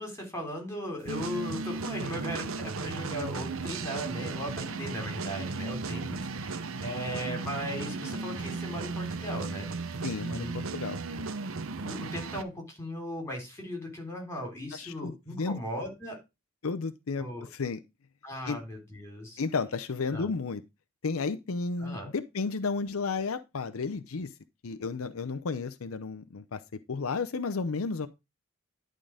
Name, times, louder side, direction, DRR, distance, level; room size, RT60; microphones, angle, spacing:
voice 1, 0.0-9.9 10.2-10.5 11.1-11.2 11.8-16.2 17.2-17.4 18.2-19.4 20.1-20.3 21.8-22.1, equal, 15° left, 3.2 m, -37 dB
sound 1, 1.1-12.4, right 4 dB, 75° right, 0.8 m, -35 dB
voice 2, 10.0-11.0 14.7-15.6 16.6-17.8 18.5-18.6 19.4-20.6 21.0-24.3 24.6-26.6 26.9-28.1, left 4 dB, 85° left, 0.6 m, -32 dB
11.0 x 3.8 x 4.9 m
head